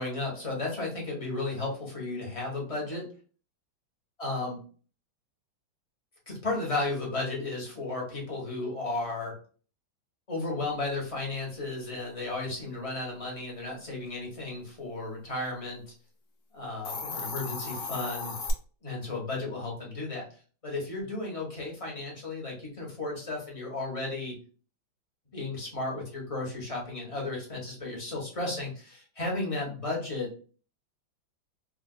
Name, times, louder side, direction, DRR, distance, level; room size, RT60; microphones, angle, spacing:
voice 1, 0.0-3.1 4.2-4.6 6.3-9.3 10.3-15.8 16.5-18.4 18.8-20.3 20.6-24.4 25.3-30.3, left 2 dB, 25° left, -3 dB, 0.8 m, -34 dB
Hiss, 16.7-18.5, left 4 dB, 70° left, 0.7 m, -35 dB
3.6 x 2.5 x 2.3 m, 0.39 s
omnidirectional pair, 2.2 m